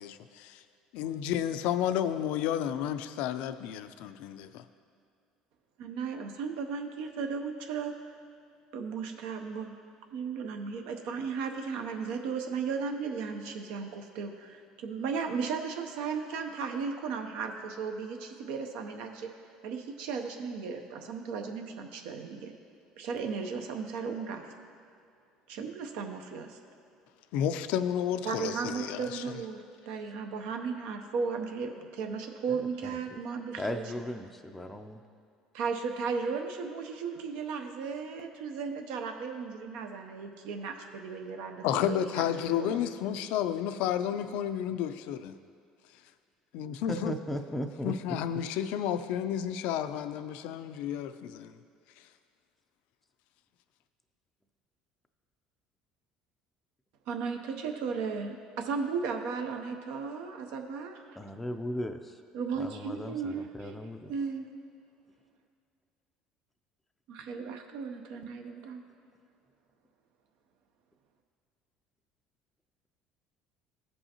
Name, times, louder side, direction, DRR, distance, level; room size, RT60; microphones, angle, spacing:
voice 1, 0.0-0.6 0.9-4.6 27.3-29.4 41.6-45.4 46.5-47.1 47.8-51.6 52.0-52.1, left 10 dB, 75° left, 11 dB, 0.4 m, -31 dB
voice 2, 5.8-8.1 8.7-9.7 10.1-19.3 19.6-22.5 23.0-24.4 25.5-26.6 28.2-33.8 35.5-42.8 57.1-61.2 62.3-63.8 64.1-64.5 67.1-68.8, right 5 dB, 80° right, 4 dB, 0.6 m, -35 dB
voice 3, 32.5-32.9 33.6-35.0 46.9-48.2 61.2-62.2 62.6-64.1, equal, 5° left, 4 dB, 0.4 m, -37 dB
14.5 x 5.4 x 2.9 m, 2.4 s
cardioid pair, 130°, 2 cm